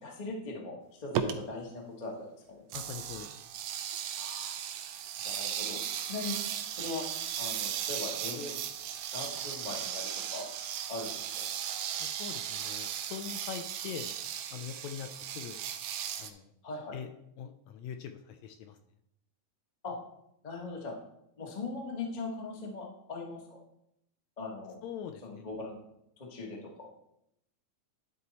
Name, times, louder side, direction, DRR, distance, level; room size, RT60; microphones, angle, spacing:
voice 1, 0.0-2.6 4.2-4.6 5.2-6.4 6.7-7.0 7.4-8.5 9.1-10.5 10.9-11.1 11.4-11.5 16.6-16.9 19.8-19.9 20.4-20.9 21.4-23.6 24.4-24.7 25.2-25.8 26.2-26.9, left 3 dB, 40° left, -1 dB, 0.5 m, -40 dB
sound 1, 1.1-1.3 2.7-16.3, right 9 dB, 75° right, 1.7 m, -36 dB
voice 2, 2.7-3.3 12.0-14.1 14.5-15.6 16.2-16.5 16.9-17.1 17.4-18.8 24.8-25.5, left 8 dB, 80° left, 7 dB, 1.7 m, -42 dB
11.0 x 4.2 x 4.1 m, 0.77 s
omnidirectional pair, 3.5 m